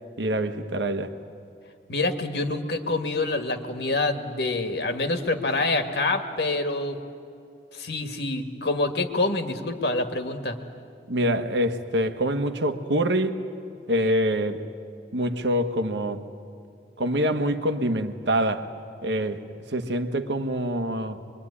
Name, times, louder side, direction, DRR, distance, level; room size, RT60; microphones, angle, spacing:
voice 1, 0.2-1.1 11.1-13.4 13.9-14.6 15.1-16.2 17.0-18.7 19.0-21.2, equal, 85° right, 1.4 m, -25 dB
voice 2, 1.9-7.0 7.7-10.6, left 2 dB, 70° left, 1.9 m, -26 dB
24.5 x 23.0 x 9.9 m
head